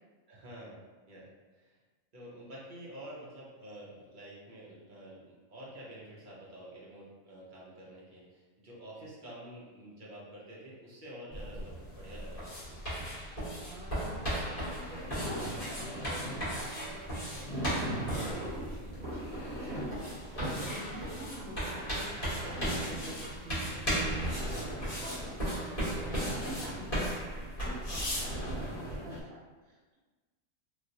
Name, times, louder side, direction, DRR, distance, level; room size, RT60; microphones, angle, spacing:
voice 1, 0.3-0.8 1.1-1.3 1.5-1.8 2.1-13.0 18.7-19.0 28.7-28.9, right 1 dB, 50° right, -6 dB, 0.6 m, -49 dB
sound 1, 11.3-29.0, equal, 30° left, 1.3 m, -36 dB
voice 2, 13.5-17.5 17.9-30.0, right 2 dB, 80° right, -5 dB, 1.3 m, -48 dB
sound 2, 14.8-29.2, equal, 10° left, 1.1 m, -41 dB
3.1 x 2.6 x 2.6 m, 1.3 s
omnidirectional pair, 1.4 m